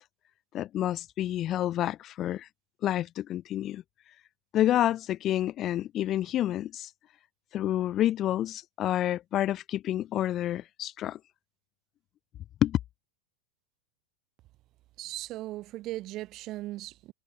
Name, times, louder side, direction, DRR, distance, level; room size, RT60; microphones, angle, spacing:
voice 1, 0.5-2.5 2.8-3.8 4.5-6.9 7.5-11.2 12.6-12.8, left 12 dB, 30° left, 0.6 m, -28 dB
voice 2, 15.0-17.1, right 16 dB, 35° right, 2.9 m, -38 dB
figure-of-eight pair, 90°, 0 cm